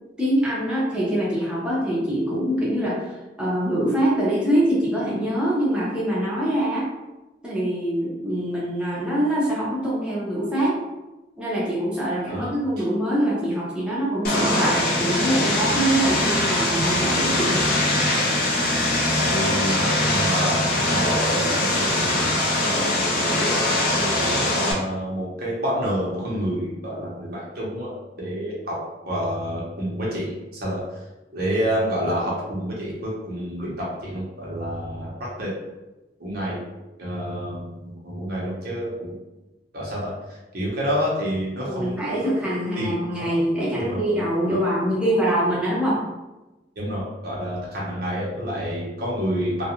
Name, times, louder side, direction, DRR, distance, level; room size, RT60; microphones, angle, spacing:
voice 1, 0.2-6.9 7.4-10.8 11.4-17.7 41.6-46.0, right 1 dB, 5° right, -9 dB, 0.7 m, -24 dB
Vehicle, 14.2-24.7, left 1 dB, 55° left, 0.5 m, -22 dB
voice 2, 19.3-22.8 23.3-27.9 28.2-28.8 29.0-30.3 30.6-30.8 31.3-35.1 35.4-35.5 36.2-36.6 37.0-39.2 39.7-42.0 42.8-43.3 43.8-44.0 44.5-44.6 46.8-49.6, equal, 60° right, -5 dB, 0.8 m, -28 dB
2.4 x 2.2 x 2.8 m, 1.1 s
head